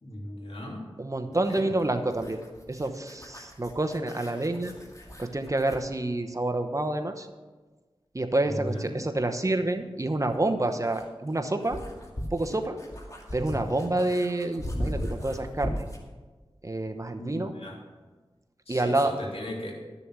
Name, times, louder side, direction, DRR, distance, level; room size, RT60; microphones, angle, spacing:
voice 1, 0.0-0.8 1.3-1.7 8.4-8.9 17.2-17.8 18.7-19.7, left 1 dB, 75° left, -2 dB, 3.0 m, -37 dB
voice 2, 1.0-2.4 2.7-4.7 5.2-7.3 8.1-11.8 12.3-12.8 13.3-15.8 16.6-17.5 18.7-19.2, right 2 dB, 35° right, 6 dB, 1.0 m, -28 dB
sound 1, 1.3-5.9 8.2-8.3 10.3-16.1, equal, 35° left, 2.2 m, -38 dB
12.5 x 7.0 x 6.1 m, 1.3 s
wide cardioid pair, 45°, 10 cm